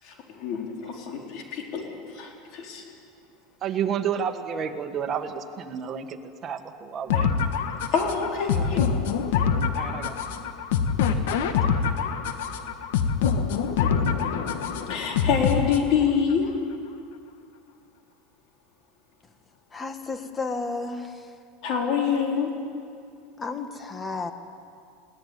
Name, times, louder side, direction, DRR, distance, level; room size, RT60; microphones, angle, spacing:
voice 1, 0.0-2.8 7.9-8.8 14.9-16.5 21.6-22.5, left 6 dB, 55° left, 1 dB, 4.2 m, -26 dB
voice 2, 3.6-7.3 8.5-8.8 9.3-10.2, right 7 dB, 30° right, 5 dB, 1.7 m, -31 dB
sound 1, 7.1-16.1, left 6 dB, 80° left, 1.7 m, -25 dB
voice 3, 19.7-21.3 23.4-24.3, left 3 dB, 20° left, 8 dB, 1.6 m, -32 dB
21.5 x 17.5 x 9.5 m, 2.3 s
supercardioid pair, 135°, 0 cm